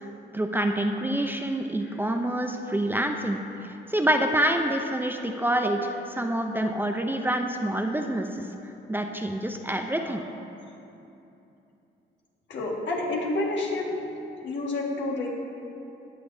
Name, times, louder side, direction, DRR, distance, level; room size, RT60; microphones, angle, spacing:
voice 1, 0.3-8.5 8.9-10.2, right 1 dB, 10° right, 3 dB, 0.5 m, -27 dB
voice 2, 12.5-13.9 14.4-15.4, left 2 dB, 65° left, -1 dB, 1.6 m, -29 dB
17.5 x 6.7 x 2.7 m, 2.8 s
cardioid pair, 90°, 20 cm